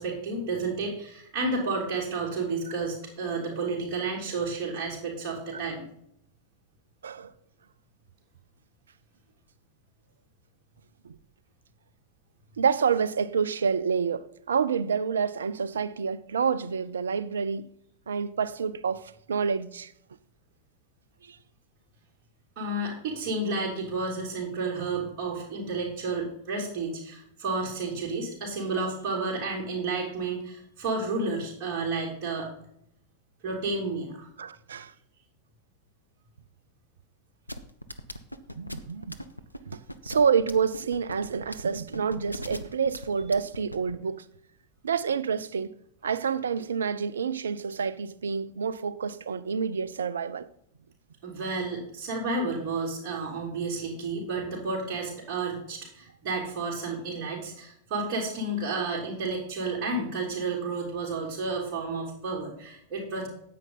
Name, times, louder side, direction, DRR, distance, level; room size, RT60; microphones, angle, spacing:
voice 1, 0.0-5.8 22.5-32.5 33.4-34.3 51.2-63.3, right 3 dB, 40° right, 3.4 m, -31 dB
voice 2, 12.6-17.7 18.1-19.9 21.2-21.4 34.4-34.9 38.6-39.2 39.7-44.2 44.8-45.7 46.0-50.5, right 6 dB, 70° right, 0.5 m, -28 dB
sound 1, 37.5-43.9, left 1 dB, 90° left, 0.7 m, -38 dB
9.7 x 8.6 x 4.0 m
figure-of-eight pair, 90°, 0 cm